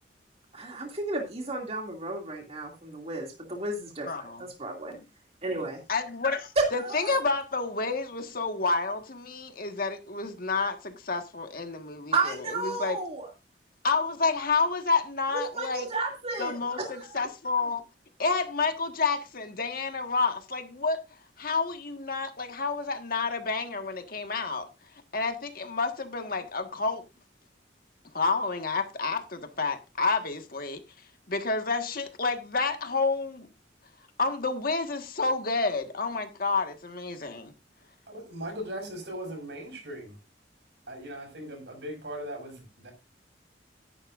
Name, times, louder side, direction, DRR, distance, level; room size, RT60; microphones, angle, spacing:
voice 1, 0.5-5.0 5.4-5.8 6.6-7.2 12.1-13.3 15.3-17.2, right 3 dB, 35° right, 2.6 m, -32 dB
voice 2, 4.1-4.4 5.9-12.1 12.4-13.0 13.8-15.8 16.4-17.8 18.2-21.0 21.4-24.6 25.1-27.0 28.1-30.8 31.3-33.5 34.2-37.5, left 4 dB, 55° left, 1.6 m, -29 dB
voice 3, 38.1-40.2 40.9-42.9, equal, 70° right, 6.4 m, -39 dB
14.5 x 11.0 x 2.6 m
head